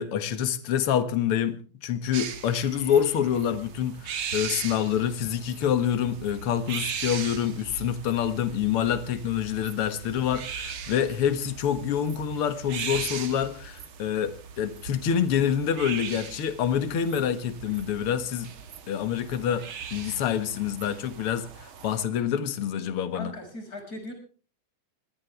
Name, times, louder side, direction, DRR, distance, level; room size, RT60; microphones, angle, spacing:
voice 1, 0.0-18.5 18.9-23.3, left 9 dB, 50° left, 2.1 m, -27 dB
sound 1, 2.1-22.1, right 7 dB, 50° right, 2.0 m, -39 dB
voice 2, 23.1-24.1, left 1 dB, 30° left, 6.3 m, -38 dB
22.5 x 17.5 x 3.4 m
omnidirectional pair, 3.5 m